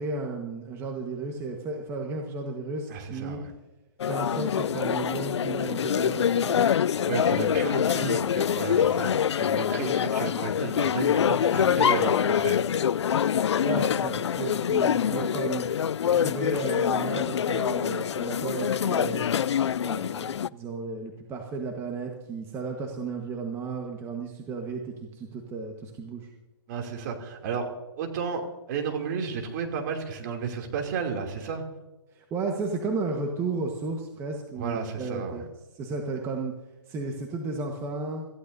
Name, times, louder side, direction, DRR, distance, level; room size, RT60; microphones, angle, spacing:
voice 1, 0.0-3.4 4.0-6.7 8.0-8.1 13.6-15.7 16.1-19.3 19.8-26.3 32.1-35.5 35.7-36.5 36.9-38.3, right 3 dB, 15° right, 2 dB, 1.4 m, -33 dB
voice 2, 2.9-3.5 7.1-12.7 26.7-27.7 28.0-28.4 28.7-31.6 34.6-35.4, right 6 dB, 40° right, 3 dB, 2.9 m, -32 dB
sound 1, 4.0-20.5, left 8 dB, 80° left, 0.4 m, -25 dB
27.0 x 15.0 x 2.7 m, 1.1 s
hypercardioid pair, 145°, 14 cm